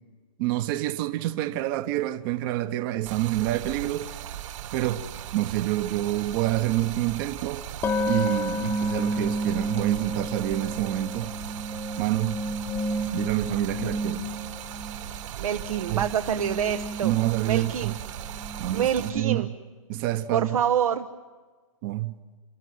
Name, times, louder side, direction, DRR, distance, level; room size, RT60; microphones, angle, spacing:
voice 1, 0.4-4.1 4.7-5.0 5.3-7.6 8.1-11.3 12.0-12.4 13.1-14.3 15.9-16.1 17.0-18.0 18.6-19.5 19.9-20.6 21.8-22.1, right 15 dB, 40° right, 0.9 m, -27 dB
Stream, 3.0-19.1, right 11 dB, 60° right, 1.9 m, -38 dB
sound 1, 6.3-6.4 7.8-15.2 15.5-19.2, right 1 dB, 15° left, 1.2 m, -31 dB
voice 2, 15.4-17.1 17.4-17.9 18.7-19.5 20.3-21.1, right 9 dB, 80° right, 0.9 m, -26 dB
29.5 x 13.0 x 9.4 m
hypercardioid pair, 145°, 18 cm